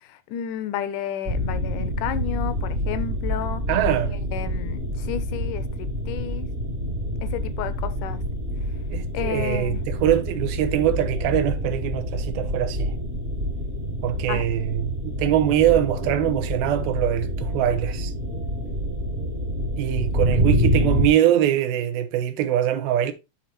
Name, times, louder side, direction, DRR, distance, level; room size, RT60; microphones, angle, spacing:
voice 1, 0.0-3.6 4.3-6.5 7.2-8.2 9.1-9.8 14.3-14.4, left 10 dB, 75° left, 2.0 m, -32 dB
sound 1, 1.3-21.1, equal, 40° right, 0.9 m, -27 dB
voice 2, 3.7-4.2 8.9-12.9 14.0-18.1 19.8-23.1, right 11 dB, 85° right, 2.8 m, -23 dB
10.5 x 3.9 x 4.1 m
omnidirectional pair, 4.2 m